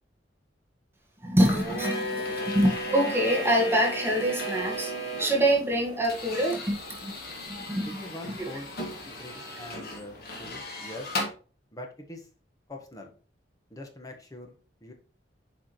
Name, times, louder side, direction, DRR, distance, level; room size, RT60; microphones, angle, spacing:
voice 1, 1.2-4.9 5.2-7.1 7.5-8.0, right 1 dB, 15° right, 1.6 m, -25 dB
Automatic coffee machine, 1.4-11.3, equal, 55° left, 1.8 m, -35 dB
voice 2, 7.8-8.7 9.0-11.1 11.7-12.3 12.7-13.1 13.7-14.9, left 1 dB, 20° left, 1.4 m, -43 dB
8.0 x 4.9 x 3.1 m
head